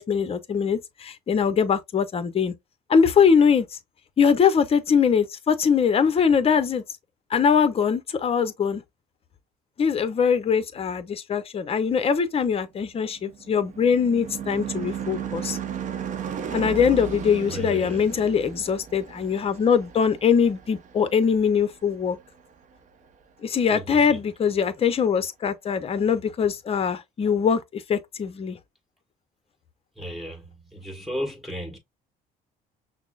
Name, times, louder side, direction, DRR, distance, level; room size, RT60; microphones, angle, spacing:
voice 1, 0.0-2.5 2.9-3.7 4.2-6.8 7.3-8.8 9.8-15.6 16.5-22.2 23.4-28.6, left 6 dB, 35° left, 0.7 m, -22 dB
Car passing by / Truck / Engine, 12.9-21.6, right 8 dB, 50° right, 0.7 m, -35 dB
voice 2, 17.5-18.1 23.7-24.2 29.9-31.8, equal, ahead, 1.5 m, -34 dB
5.8 x 2.0 x 2.4 m
cardioid pair, 110°, 17 cm